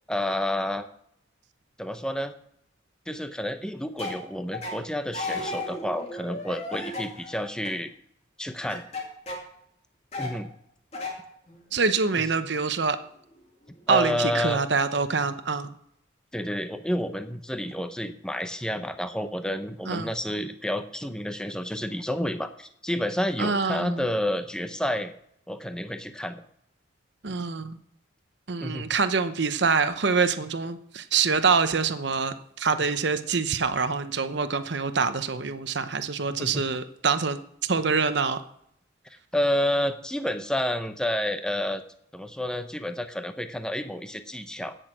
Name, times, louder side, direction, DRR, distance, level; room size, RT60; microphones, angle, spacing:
voice 1, 0.1-0.9 1.8-2.3 3.1-7.9 8.4-8.8 10.2-10.5 12.2-12.3 13.9-14.6 16.3-25.1 25.5-26.4 28.6-28.9 36.4-36.7 39.3-41.8 42.1-44.8, left 1 dB, 5° left, 8 dB, 0.7 m, -29 dB
sound 1, 4.0-4.2 4.5-4.8 5.1-7.7 8.6-9.5 10.1-10.4 10.9-11.2 11.5-12.4 13.3-13.4 13.7-14.5, left 2 dB, 35° left, 2.6 m, -35 dB
voice 2, 11.7-13.0 13.9-15.7 19.9-20.1 23.4-24.0 27.2-27.8 28.5-37.4 37.7-38.4, right 5 dB, 60° right, 10 dB, 0.8 m, -25 dB
16.5 x 6.5 x 6.1 m, 0.73 s
head